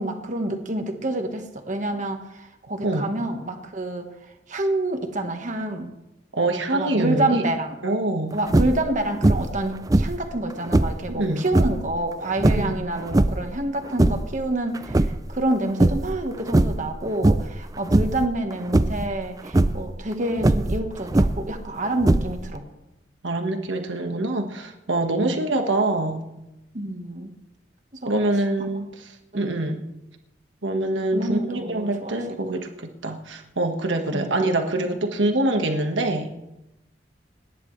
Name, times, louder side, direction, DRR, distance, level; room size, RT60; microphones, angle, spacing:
voice 1, 0.0-4.1 4.5-5.9 6.7-7.8 8.3-22.7 25.2-25.4 26.7-27.3 28.0-28.3 29.3-29.7 31.1-32.2 34.1-34.3, right 1 dB, 40° right, 4 dB, 1.5 m, -28 dB
voice 2, 6.3-7.4 7.8-8.4 11.1-11.4 12.5-12.8 23.2-26.3 28.0-29.1 29.3-29.8 30.6-36.3, right 2 dB, 90° right, 4 dB, 1.5 m, -25 dB
sound 1, 8.5-8.9 9.2-9.6 9.9-11.0 11.5-11.8 12.4-13.5 13.8-14.4 14.7-15.5 15.8-16.2 16.5-16.9 17.2-17.6 17.9-18.3 18.7-19.1 19.5-19.8 20.4-21.5 22.0-22.6, right 1 dB, 20° right, 0.4 m, -20 dB
29.5 x 10.0 x 3.3 m, 0.94 s
head